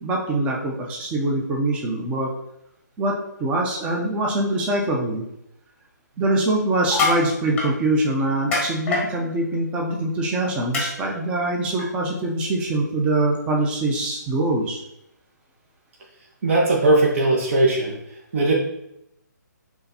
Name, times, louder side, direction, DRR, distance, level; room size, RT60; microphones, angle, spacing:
voice 1, 0.0-2.3 3.0-5.2 6.2-14.8, right 2 dB, 10° right, -1 dB, 0.5 m, -23 dB
sound 1, 6.8-7.2 7.6-7.7 8.5-9.1 10.7-10.9 11.8-11.9, left 3 dB, 10° left, 1.1 m, -23 dB
voice 2, 16.4-17.9 18.3-18.5, right 2 dB, 45° right, -2 dB, 1.1 m, -19 dB
5.5 x 3.5 x 2.7 m, 0.81 s
figure-of-eight pair, 145°, 10 cm